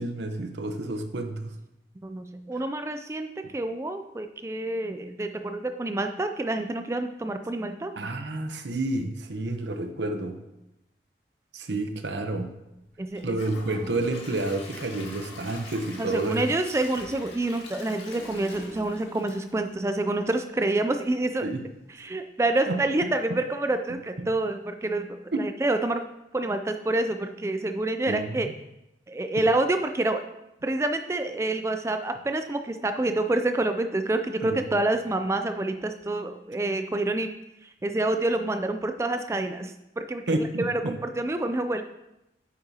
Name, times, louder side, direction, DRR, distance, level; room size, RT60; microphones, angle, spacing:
voice 1, 0.0-1.5 8.0-10.4 11.5-12.5 13.2-16.4 21.4-21.6 22.6-22.8 25.3-25.4 28.1-28.5 34.4-34.7 40.3-40.9, right 2 dB, 85° right, 6 dB, 0.9 m, -30 dB
voice 2, 2.0-3.3 3.5-7.9 13.0-13.4 16.0-21.5 22.0-25.1 25.4-26.0 26.3-28.5 29.1-30.2 30.6-37.3 37.6-41.8, right 2 dB, 15° right, 7 dB, 0.3 m, -27 dB
Gurgling / Toilet flush / Trickle dribble, 13.1-20.2 20.6-20.7 21.2-21.3, left 2 dB, 90° left, 2.0 m, -44 dB
9.4 x 8.4 x 2.8 m, 0.91 s
head